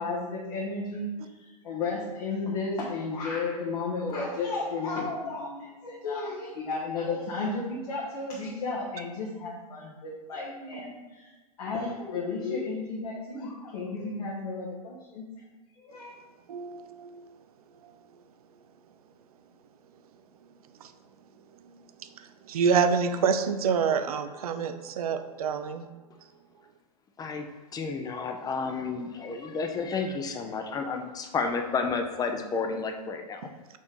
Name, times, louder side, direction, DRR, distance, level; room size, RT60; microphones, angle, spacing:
voice 1, 0.0-11.3 11.6-15.2 15.8-16.1, left 3 dB, 65° left, -4 dB, 1.4 m, -33 dB
voice 2, 16.5-17.3 17.8-17.9 20.8-20.9 22.0-25.9, right 6 dB, 65° right, 10 dB, 0.6 m, -27 dB
voice 3, 27.7-33.4, left 4 dB, 20° left, 5 dB, 0.7 m, -31 dB
5.3 x 3.4 x 5.4 m, 1.3 s
hypercardioid pair, 110°, 20 cm